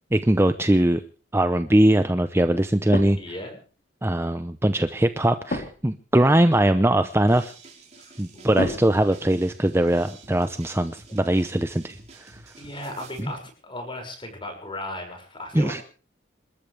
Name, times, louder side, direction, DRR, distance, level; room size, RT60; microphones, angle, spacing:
voice 1, 0.1-1.0 1.3-3.2 4.0-7.5 8.2-12.3 13.2-13.3 15.5-15.8, right 1 dB, 15° right, 10 dB, 0.7 m, -21 dB
sound 1, 2.9-3.5 5.5-6.0 8.6-9.7 13.2-13.5, left 1 dB, 50° left, 3.6 m, -32 dB
voice 2, 3.2-3.6 8.0-9.1 11.1-11.2 12.6-15.8, left 1 dB, 25° left, 4 dB, 6.1 m, -37 dB
sound 2, 7.3-13.2, right 3 dB, 35° right, 5.1 m, -49 dB
28.0 x 13.5 x 3.4 m, 0.39 s
head